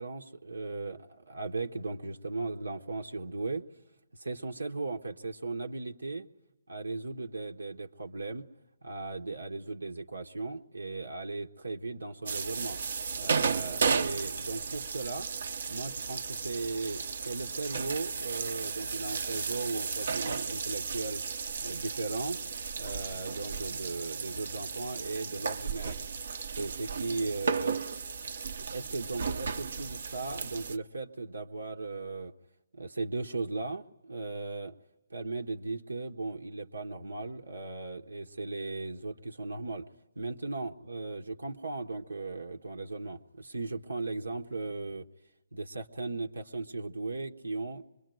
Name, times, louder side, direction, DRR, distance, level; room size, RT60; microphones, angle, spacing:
voice 1, 0.0-3.6 4.1-6.3 6.7-8.5 8.8-12.8 13.1-15.3 15.7-21.2 21.6-22.4 22.8-26.0 26.5-27.8 28.6-32.3 32.7-34.8 35.1-39.9 40.2-45.1 45.5-47.8, right 3 dB, 90° right, 3 dB, 1.3 m, -37 dB
sound 1, 12.3-30.8, right 5 dB, 60° right, 0.9 m, -34 dB
25.5 x 22.5 x 9.1 m, 0.99 s
hypercardioid pair, 150°, 0 cm